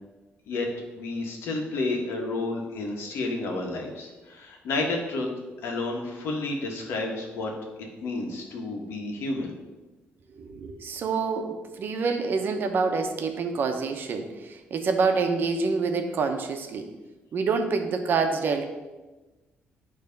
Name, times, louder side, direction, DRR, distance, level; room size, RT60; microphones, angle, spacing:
voice 1, 0.9-5.3 5.6-7.5 8.0-9.5, left 2 dB, 90° left, 1 dB, 1.4 m, -30 dB
voice 2, 10.4-16.9 17.3-18.7, right 4 dB, 60° right, 6 dB, 0.8 m, -27 dB
9.3 x 3.2 x 5.2 m, 1.2 s
cardioid pair, 125°, 4 cm